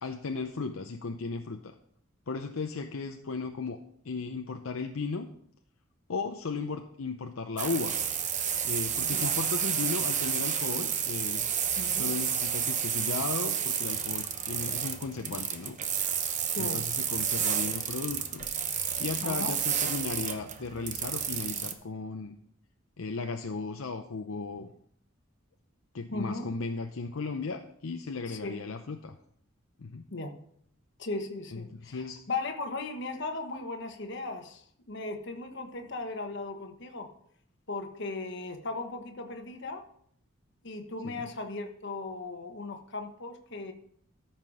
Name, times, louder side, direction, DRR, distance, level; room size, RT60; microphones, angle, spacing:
voice 1, 0.0-1.7 2.3-3.8 4.0-5.3 6.1-8.0 8.6-11.5 11.9-15.8 16.6-18.5 19.0-22.4 23.0-24.7 25.9-29.2 29.8-30.0 31.8-32.2 41.0-41.3, left 4 dB, 75° left, 5 dB, 0.7 m, -35 dB
sound 1, 7.6-21.7, right 8 dB, 35° right, 0.9 m, -31 dB
voice 2, 11.8-12.1 16.5-16.9 19.2-19.5 26.1-26.5 28.2-28.6 30.1-30.4 31.0-37.1 37.7-39.9 40.6-43.7, left 3 dB, 55° left, 5 dB, 1.3 m, -37 dB
13.5 x 5.9 x 4.9 m, 0.65 s
head